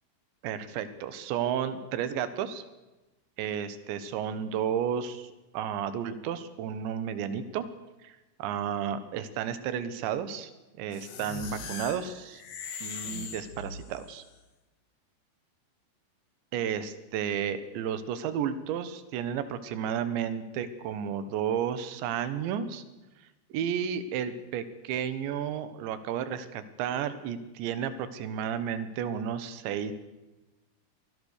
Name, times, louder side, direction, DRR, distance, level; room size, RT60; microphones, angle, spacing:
voice 1, 0.4-2.6 3.4-7.7 8.0-10.5 10.8-12.4 12.8-14.2 16.5-22.8 23.5-29.9, right 8 dB, 80° right, 13 dB, 3.6 m, -32 dB
sound 1, 10.9-14.2, left 5 dB, 50° left, 2.5 m, -40 dB
24.5 x 19.0 x 6.6 m, 1.1 s
omnidirectional pair, 5.2 m